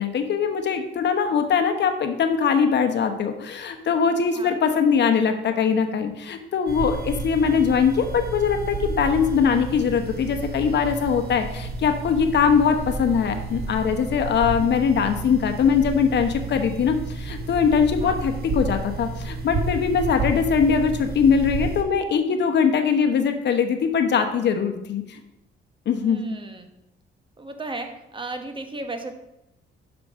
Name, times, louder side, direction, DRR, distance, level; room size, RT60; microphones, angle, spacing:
voice 1, 0.0-25.2 25.9-26.2, left 6 dB, 60° left, 6 dB, 1.0 m, -21 dB
sound 1, 6.7-21.8, right 3 dB, 55° right, 1.6 m, -31 dB
voice 2, 26.0-26.7 27.4-29.2, right 2 dB, 25° right, 6 dB, 1.1 m, -35 dB
6.1 x 5.1 x 6.3 m, 0.86 s
cardioid pair, 90°, 20 cm